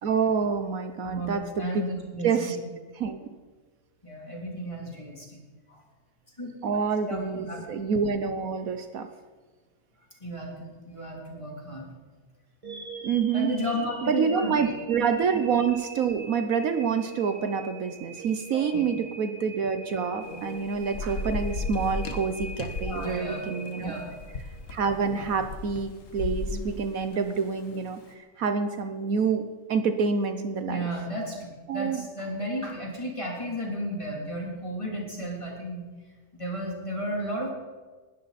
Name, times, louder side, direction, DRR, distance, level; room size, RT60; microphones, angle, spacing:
voice 1, 0.0-1.9 2.2-2.6 3.0-3.3 6.6-9.1 13.0-13.5 14.0-23.9 24.7-30.9 31.7-32.0, right 6 dB, 70° right, 8 dB, 1.3 m, -27 dB
voice 2, 1.0-2.6 4.0-5.4 5.7-5.8 6.4-6.8 7.1-7.6 10.2-11.9 13.3-14.7 18.5-18.9 20.3-20.4 22.9-23.4 23.8-24.2 30.6-31.4 31.7-35.9 36.3-37.5, equal, 20° left, -2 dB, 3.4 m, -33 dB
sound 1, 12.6-24.7, right 2 dB, 25° right, 1.8 m, -42 dB
Thunder / Rain, 20.2-27.9, left 3 dB, 60° left, 1.7 m, -35 dB
20.0 x 12.5 x 4.2 m, 1.3 s
omnidirectional pair, 1.6 m